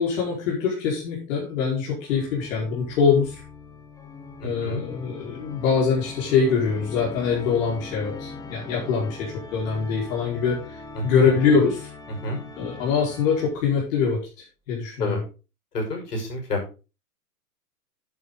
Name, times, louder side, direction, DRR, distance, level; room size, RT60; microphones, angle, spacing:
voice 1, 0.0-3.4 4.4-11.9 12.6-14.2 14.7-15.2, left 5 dB, 55° left, -4 dB, 5.1 m, -23 dB
Organ, 2.0-13.9, left 4 dB, 5° left, 1.5 m, -41 dB
voice 2, 4.4-4.8 10.9-11.0 12.2-12.4 15.0-15.2 15.7-16.6, left 2 dB, 80° left, 2 dB, 6.3 m, -28 dB
10.5 x 8.9 x 4.1 m, 0.32 s
hypercardioid pair, 115°, 47 cm